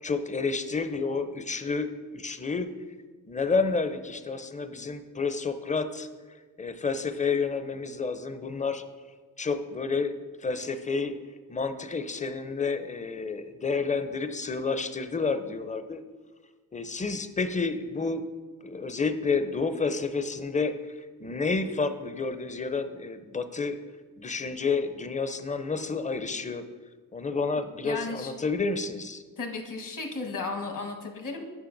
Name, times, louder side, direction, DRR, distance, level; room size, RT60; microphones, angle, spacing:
voice 1, 0.0-2.7 3.3-6.1 6.6-8.8 9.4-11.1 11.5-16.0 16.7-18.2 18.6-20.9 21.2-23.8 24.2-26.6 27.1-29.2, left 4 dB, 20° left, 10 dB, 0.5 m, -30 dB
voice 2, 27.8-28.3 29.4-31.4, left 3 dB, 60° left, 2 dB, 1.2 m, -34 dB
9.8 x 5.5 x 2.6 m, 1.4 s
cardioid pair, 60°, 37 cm